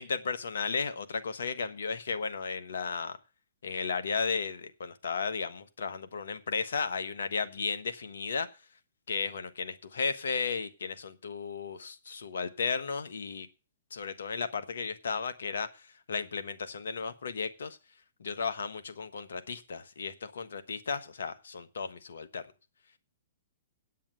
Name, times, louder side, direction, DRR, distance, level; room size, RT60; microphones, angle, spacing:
voice 1, 0.0-3.2 3.6-8.5 9.1-13.5 13.9-15.7 16.1-17.8 18.2-22.4, left 5 dB, 70° left, 10 dB, 1.3 m, -34 dB
8.8 x 8.4 x 6.7 m, 0.31 s
figure-of-eight pair, 120°, 0 cm